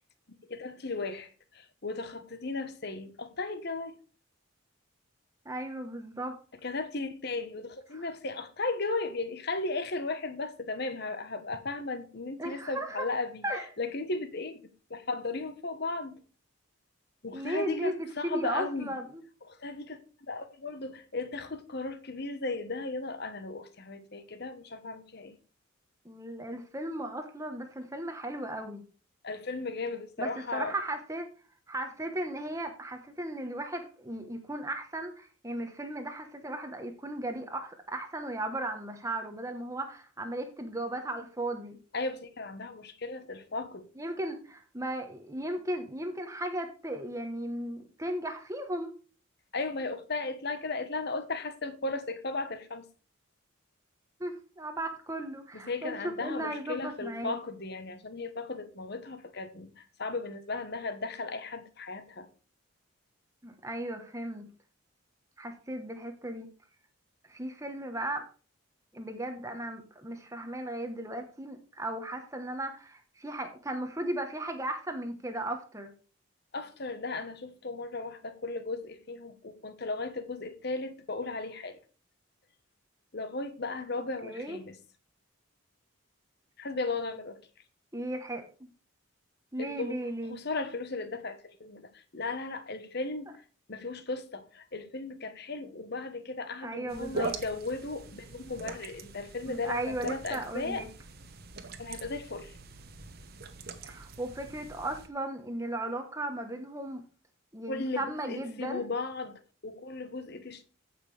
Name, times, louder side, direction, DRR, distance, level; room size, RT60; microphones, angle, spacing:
voice 1, 0.3-3.9 6.6-13.4 13.8-14.6 14.9-16.2 17.2-18.9 19.5-25.4 29.2-30.7 41.9-43.9 49.5-52.9 55.5-62.3 76.5-81.8 83.1-84.8 86.6-87.4 89.6-90.0 90.3-93.3 93.7-100.8 101.8-102.6 107.7-110.6, left 3 dB, 50° left, 1.1 m, -36 dB
voice 2, 5.4-6.4 7.9-8.1 12.4-13.1 13.4-13.6 17.3-19.2 26.0-28.8 30.2-31.3 31.7-41.8 44.0-48.9 54.2-57.3 63.4-64.5 65.4-66.5 67.3-68.3 68.9-75.9 84.2-84.6 87.9-88.7 89.5-90.4 96.6-97.3 99.5-100.9 103.8-107.0 107.5-108.9, right 1 dB, 15° right, 1.1 m, -36 dB
sound 1, 96.9-105.1, right 3 dB, 45° right, 1.1 m, -42 dB
15.5 x 5.9 x 3.3 m
head